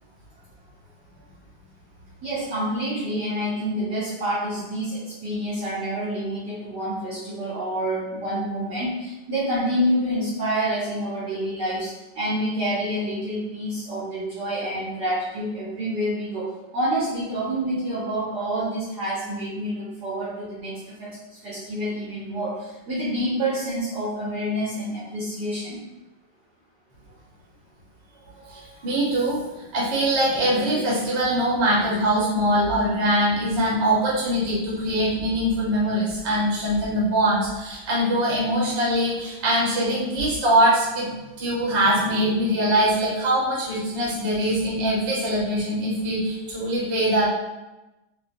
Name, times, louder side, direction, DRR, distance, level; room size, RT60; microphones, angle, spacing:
voice 1, 2.2-25.8, equal, 65° right, -7 dB, 1.2 m, -28 dB
voice 2, 28.4-41.1 41.4-47.3, right 1 dB, 45° right, -6 dB, 1.0 m, -22 dB
3.5 x 2.6 x 2.5 m, 1.0 s
omnidirectional pair, 2.2 m